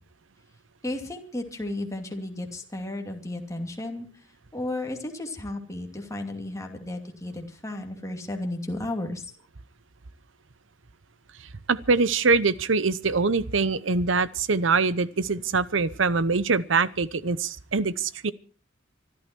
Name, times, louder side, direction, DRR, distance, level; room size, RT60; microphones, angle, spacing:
voice 1, 0.8-4.1 4.5-9.3, left 1 dB, 15° left, 2 dB, 2.6 m, -33 dB
voice 2, 11.7-18.3, right 4 dB, 80° right, 17 dB, 0.9 m, -24 dB
25.0 x 12.5 x 4.5 m, 0.38 s
head